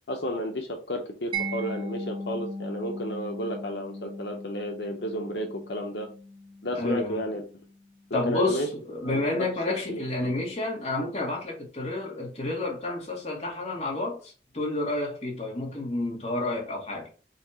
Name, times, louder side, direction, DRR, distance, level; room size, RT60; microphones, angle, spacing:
voice 1, 0.1-6.1 6.6-7.4 8.1-8.7 9.0-9.5 9.9-10.3, equal, 75° left, 0.8 m, -32 dB
Mallet percussion, 1.3-8.1, right 1 dB, 25° right, 0.9 m, -38 dB
voice 2, 6.7-7.2 8.1-17.1, left 2 dB, 35° left, 1.6 m, -30 dB
4.2 x 2.8 x 4.2 m
head